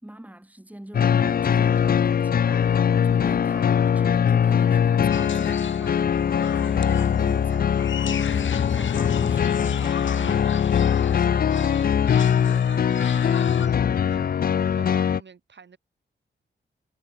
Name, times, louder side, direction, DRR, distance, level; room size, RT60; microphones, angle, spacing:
voice 1, 0.0-10.5, right 1 dB, 10° right, 3.1 m, -42 dB
sound 1, 0.9-15.2, left 8 dB, 50° left, 0.4 m, -21 dB
sound 2, 5.1-13.7, left 7 dB, 85° left, 3.4 m, -38 dB
voice 2, 10.6-15.8, right 6 dB, 70° right, 4.5 m, -48 dB
cardioid pair, 65°, 19 cm